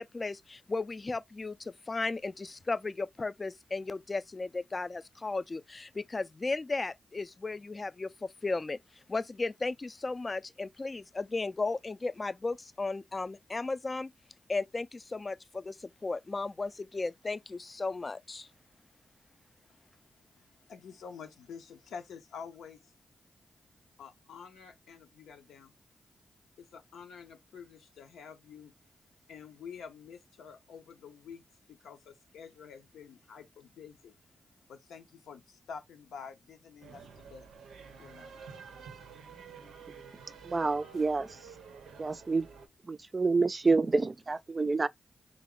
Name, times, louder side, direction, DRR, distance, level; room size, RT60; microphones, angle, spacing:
voice 1, 0.0-8.8 9.1-14.1 14.5-18.5, left 3 dB, 40° left, 0.3 m, -35 dB
voice 2, 19.7-22.9 24.0-25.7 26.6-28.7 29.3-34.1 34.7-37.5 38.0-38.5, left 6 dB, 90° left, 0.6 m, -48 dB
sound 1, 36.8-42.7, right 6 dB, 90° right, 0.6 m, -50 dB
voice 3, 40.4-41.3 42.0-42.5 42.9-44.9, right 3 dB, 45° right, 0.3 m, -28 dB
3.4 x 2.0 x 3.6 m
supercardioid pair, 45°, 0 cm